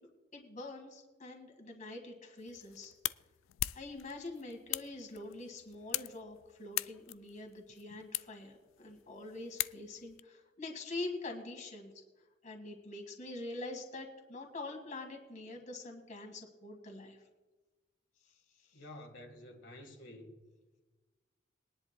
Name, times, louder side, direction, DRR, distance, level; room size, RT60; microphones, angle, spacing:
voice 1, 0.3-2.9 3.7-11.9 12.4-17.2 18.2-18.8, left 2 dB, 40° left, 1.8 m, -45 dB
sound 1, 2.4-10.2, left 16 dB, 90° left, 0.3 m, -42 dB
voice 2, 18.7-20.3, left 1 dB, 70° left, 1.6 m, -50 dB
22.0 x 10.5 x 2.2 m
head